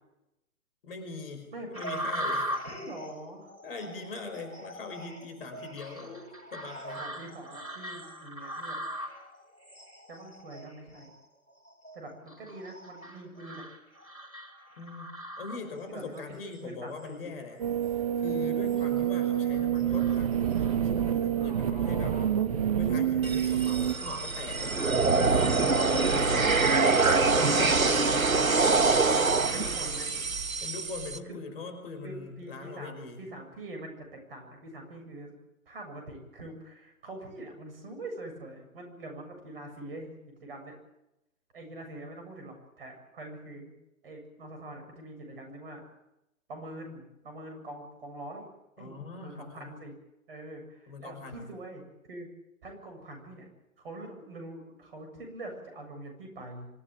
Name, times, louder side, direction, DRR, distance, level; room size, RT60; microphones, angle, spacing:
voice 1, 0.8-2.5 3.6-7.1 14.8-22.2 22.7-26.6 27.1-28.2 30.6-33.2 48.8-49.7 50.9-51.5, left 4 dB, 40° left, 6 dB, 5.4 m, -41 dB
voice 2, 1.5-1.8 2.6-3.5 7.0-8.8 10.1-11.1 11.9-13.6 15.9-17.3 21.4-22.3 25.7-26.5 28.3-28.6 29.1-30.3 31.3-31.4 32.0-35.4 35.7-40.8 41.5-43.7 44.0-45.8 46.5-48.5 48.8-48.9 49.2-49.9 50.3-52.3 52.6-53.5 53.8-56.7, right 1 dB, 40° right, 4 dB, 7.6 m, -44 dB
sound 1, 1.7-16.1 16.5-17.1 17.7-17.9 18.4-19.1 19.5-20.7, equal, 85° left, 7.1 m, -40 dB
sound 2, 17.6-23.9, right 10 dB, 25° right, 0.9 m, -27 dB
sound 3, 23.2-31.2, right 4 dB, 75° right, 1.5 m, -25 dB
26.0 x 16.0 x 9.2 m, 0.90 s
figure-of-eight pair, 135°, 42 cm